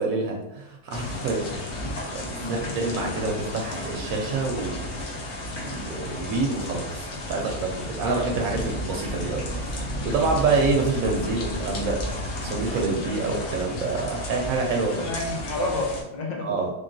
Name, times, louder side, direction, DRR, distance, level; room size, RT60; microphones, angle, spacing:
voice 1, 0.0-4.9 5.5-15.1 16.4-16.7, right 3 dB, 70° right, 0 dB, 1.0 m, -27 dB
sound 1, 0.9-16.0, left 1 dB, 60° left, 0.9 m, -33 dB
voice 2, 2.2-2.6 10.1-10.4 15.0-16.5, left 2 dB, 80° left, 0 dB, 0.4 m, -30 dB
3.6 x 3.3 x 2.6 m, 0.88 s
omnidirectional pair, 1.6 m